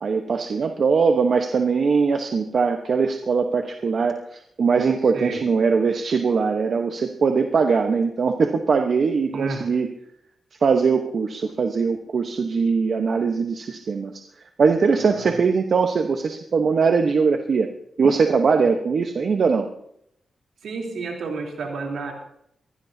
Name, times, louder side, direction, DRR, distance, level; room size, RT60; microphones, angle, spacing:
voice 1, 0.0-9.9 10.6-14.2 14.6-17.7 18.0-19.7, right 5 dB, 65° right, 5 dB, 1.1 m, -21 dB
voice 2, 5.1-5.5 9.3-9.7 15.0-15.4 20.6-22.1, right 4 dB, 85° right, 0 dB, 3.5 m, -31 dB
23.0 x 16.0 x 2.8 m, 0.72 s
cardioid pair, 65°, 0 cm